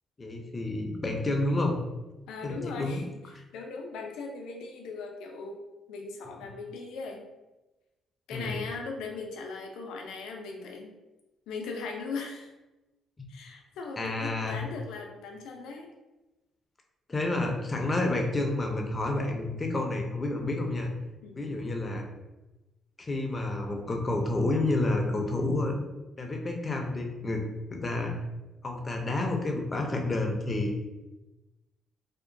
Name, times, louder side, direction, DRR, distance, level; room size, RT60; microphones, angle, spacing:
voice 1, 0.2-1.8 2.4-3.0 3.3-3.4 8.3-8.6 14.0-14.6 17.1-20.9 21.4-22.1 23.0-25.8 26.2-28.1 28.6-30.7, left 2 dB, 30° left, 2 dB, 0.5 m, -29 dB
voice 2, 2.3-3.0 3.5-5.6 5.9-7.2 8.3-10.9 11.5-12.5 13.3-15.9 21.2-21.6, left 4 dB, 90° left, 2 dB, 0.4 m, -39 dB
2.8 x 2.1 x 2.6 m, 1.1 s
cardioid pair, 90°, 0 cm